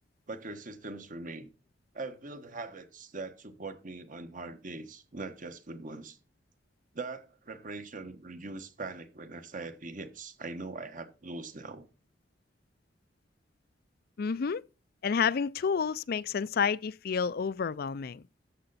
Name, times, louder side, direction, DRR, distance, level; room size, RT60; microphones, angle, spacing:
voice 1, 0.3-1.5 1.9-6.2 6.9-11.9, right 3 dB, 45° right, 1.3 m, -41 dB
voice 2, 14.2-14.6 15.0-18.2, left 6 dB, 55° left, 0.4 m, -29 dB
12.5 x 7.8 x 4.1 m
head